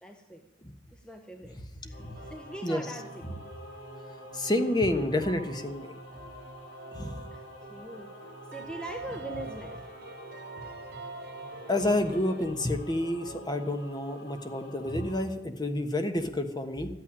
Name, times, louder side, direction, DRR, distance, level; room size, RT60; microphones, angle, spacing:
voice 1, 0.0-0.4 0.9-2.0 2.3-3.3 7.3-7.4 7.7-8.1 8.5-9.8, right 1 dB, 5° left, 4 dB, 0.9 m, -42 dB
voice 2, 1.8-2.1 2.6-2.8 4.3-5.9 6.9-7.2 11.7-16.9, left 1 dB, 20° left, 7 dB, 1.3 m, -29 dB
Singing / Musical instrument, 1.9-15.3, equal, 85° left, 3.8 m, -47 dB
sound 1, 2.1-12.5, right 3 dB, 55° right, 1.6 m, -47 dB
13.0 x 8.8 x 10.0 m, 0.93 s
head